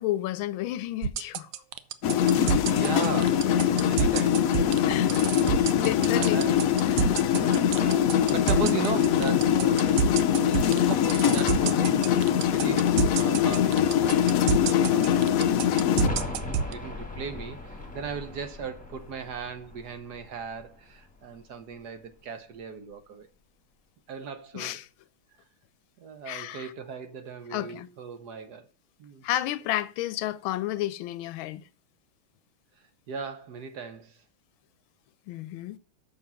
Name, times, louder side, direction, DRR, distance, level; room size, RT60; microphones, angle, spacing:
voice 1, 0.0-1.5 4.9-5.1 5.8-6.4 6.9-7.4 24.5-24.9 26.3-26.7 27.5-27.9 29.2-31.6 35.3-35.8, left 14 dB, 90° left, 1.4 m, -31 dB
sound 1, 1.0-16.7, right 8 dB, 75° right, 1.4 m, -27 dB
sound 2, 2.0-16.1, left 9 dB, 70° left, 0.8 m, -23 dB
voice 2, 2.3-3.5 3.8-4.7 6.2-6.6 7.0-15.5 16.0-23.3 24.1-24.8 26.0-28.7 29.0-29.2 33.1-34.2, right 6 dB, 60° right, 1.5 m, -38 dB
sound 3, 15.9-21.5 21.8-21.9, left 2 dB, 5° left, 1.5 m, -39 dB
7.2 x 6.3 x 5.7 m
omnidirectional pair, 2.2 m